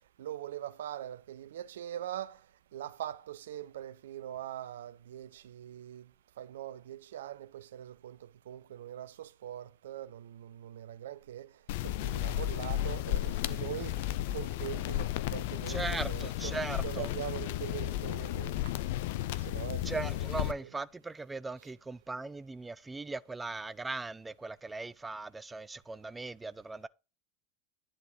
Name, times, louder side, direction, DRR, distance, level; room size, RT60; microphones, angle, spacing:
voice 1, 0.2-2.4 2.7-6.1 6.4-11.5 11.8-14.0 14.3-16.6 16.8-18.8 19.4-19.9 20.4-20.7, right 12 dB, 70° right, 0.6 m, -42 dB
sound 1, 11.7-20.5, left 14 dB, 60° left, 0.5 m, -34 dB
voice 2, 15.7-17.1 19.8-26.9, right 3 dB, 15° right, 0.4 m, -39 dB
10.0 x 4.3 x 6.1 m
figure-of-eight pair, 80°, 0 cm